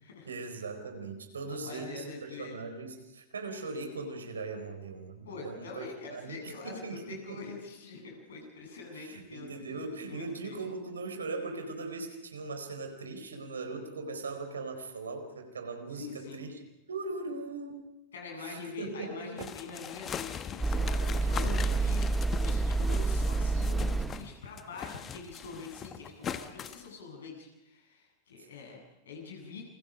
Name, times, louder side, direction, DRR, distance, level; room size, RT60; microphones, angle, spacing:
voice 1, 0.2-7.4 8.9-16.6 16.9-17.8 18.4-19.5 21.2-21.3, right 3 dB, 70° right, 6 dB, 4.5 m, -39 dB
voice 2, 1.4-2.6 5.2-10.6 15.9-16.4 18.1-29.6, left 4 dB, 65° left, 1 dB, 7.9 m, -44 dB
sound 1, 19.4-24.3 24.6-26.9, left 8 dB, 25° left, 1.1 m, -41 dB
sound 2, 20.6-24.4, right 3 dB, 5° right, 0.9 m, -28 dB
29.0 x 24.0 x 5.1 m, 0.93 s
figure-of-eight pair, 90°, 0 cm